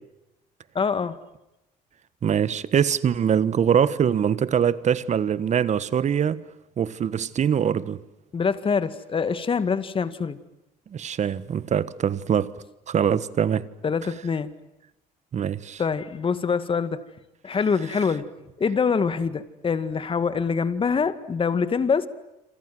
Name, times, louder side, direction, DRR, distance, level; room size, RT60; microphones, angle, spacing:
voice 1, 0.7-1.2 8.3-10.4 13.8-14.5 15.8-17.0 17.4-18.2 18.6-22.1, left 5 dB, 30° left, 2.0 m, -24 dB
voice 2, 2.2-6.4 6.8-8.0 10.9-12.5 12.9-13.7 15.3-15.8, right 8 dB, 45° right, 1.4 m, -23 dB
27.5 x 27.0 x 7.8 m
cardioid pair, 110°, 17 cm